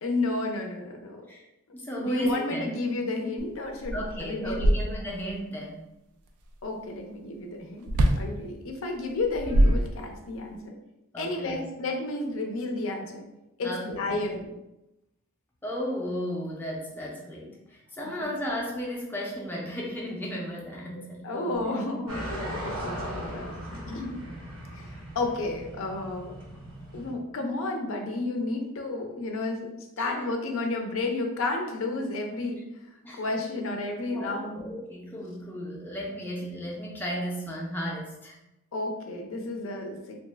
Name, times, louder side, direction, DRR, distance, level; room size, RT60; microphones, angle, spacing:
voice 1, 0.0-1.3 2.0-4.7 6.6-7.9 8.2-10.8 11.2-13.3 13.6-14.5 18.0-18.3 20.9-24.1 24.7-26.3 26.9-32.6 33.2-34.6 38.7-40.2, left 2 dB, 65° left, 3 dB, 0.5 m, -32 dB
voice 2, 1.7-2.7 3.9-5.9 11.1-11.6 13.6-14.2 15.6-21.6 30.0-30.3 33.0-33.3 34.1-38.4, equal, 10° left, -3 dB, 0.5 m, -34 dB
sound 1, 3.4-3.5 3.8-5.3 7.9-8.3 9.2-10.4, right 1 dB, 90° right, 0.4 m, -24 dB
sound 2, 22.1-27.1, equal, 75° right, 0.8 m, -38 dB
2.8 x 2.1 x 3.2 m, 0.92 s
head